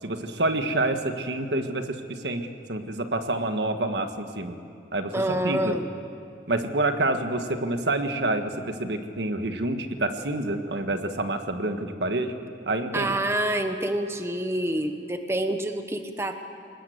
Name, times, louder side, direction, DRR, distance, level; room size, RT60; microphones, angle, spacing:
voice 1, 0.0-4.6 4.9-5.8 6.5-12.4 12.7-13.2, right 2 dB, 80° right, 7 dB, 1.6 m, -28 dB
voice 2, 5.1-5.8 12.9-16.3, right 1 dB, 15° right, 7 dB, 1.1 m, -27 dB
22.5 x 20.0 x 8.1 m, 2.6 s
head